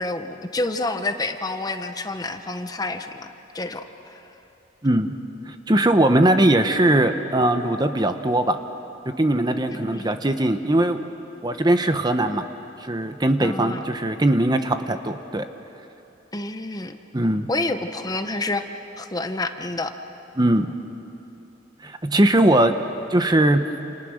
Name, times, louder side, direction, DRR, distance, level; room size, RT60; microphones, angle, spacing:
voice 1, 0.0-4.3 9.7-10.1 13.4-13.8 16.3-17.0 17.5-18.6 19.0-19.9, left 2 dB, 20° left, 7 dB, 1.0 m, -29 dB
voice 2, 4.8-5.1 5.5-8.6 9.1-11.0 11.4-12.4 12.8-15.5 17.1-17.5 20.4-20.7 21.8-22.8 23.1-23.7, right 1 dB, 20° right, 8 dB, 0.9 m, -20 dB
29.5 x 28.5 x 6.5 m, 2.9 s
head